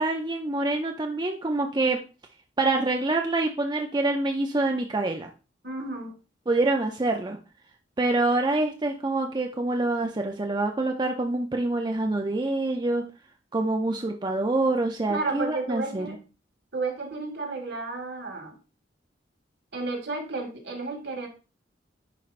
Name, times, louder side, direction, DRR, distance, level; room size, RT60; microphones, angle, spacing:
voice 1, 0.0-2.0 2.6-5.3 6.5-7.4 8.0-13.0 13.5-16.2, right 2 dB, 25° right, 3 dB, 0.5 m, -26 dB
voice 2, 5.6-6.2 15.1-16.2 16.7-18.6 19.7-21.3, right 3 dB, 65° right, 3 dB, 1.9 m, -32 dB
10.0 x 4.4 x 2.5 m, 0.32 s
head